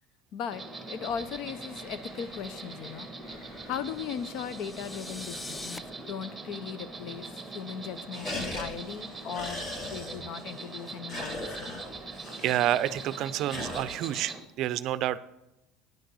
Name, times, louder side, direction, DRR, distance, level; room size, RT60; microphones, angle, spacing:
voice 1, 0.3-0.6 0.9-3.1 3.5-5.8 6.1-11.8, left 8 dB, 55° left, 15 dB, 0.7 m, -38 dB
Insect, 0.5-14.4, right 3 dB, 10° right, 1.2 m, -42 dB
Werewolf Growl, 0.9-6.2 6.6-6.7 6.9-7.4 7.7-13.8, left 1 dB, 35° left, 2.8 m, -42 dB
sound 1, 3.9-5.8, left 2 dB, 10° left, 0.4 m, -43 dB
voice 2, 12.4-15.2, right 12 dB, 50° right, 15 dB, 0.5 m, -29 dB
10.0 x 6.6 x 6.2 m, 0.92 s
cardioid pair, 140°, 0 cm